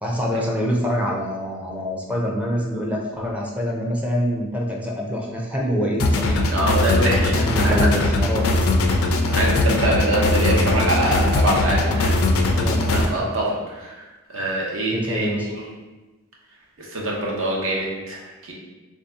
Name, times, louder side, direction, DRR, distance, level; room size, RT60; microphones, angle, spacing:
voice 1, 0.0-6.5 7.3-8.5 11.8-12.0 12.6-13.3 14.9-15.5, equal, 5° right, -2 dB, 0.4 m, -25 dB
sound 1, 6.0-13.1, left 2 dB, 90° left, 0.4 m, -20 dB
voice 2, 6.5-7.9 9.3-12.2 12.9-13.9 14.3-15.6 16.8-18.5, right 1 dB, 70° right, -3 dB, 0.9 m, -24 dB
3.4 x 2.7 x 3.5 m, 1.2 s
head